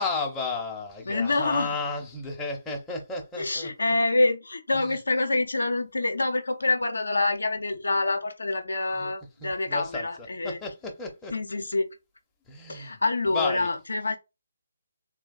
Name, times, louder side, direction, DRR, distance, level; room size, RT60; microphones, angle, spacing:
voice 1, 0.0-3.7 4.7-5.0 8.9-9.1 9.4-10.1 10.4-11.3 12.5-13.0 13.3-13.7, left 3 dB, 10° left, 0.5 m, -33 dB
voice 2, 1.1-1.8 3.4-10.6 11.3-11.9 12.7-14.2, left 2 dB, 75° left, 0.4 m, -26 dB
3.3 x 2.3 x 2.2 m
figure-of-eight pair, 145°, 0 cm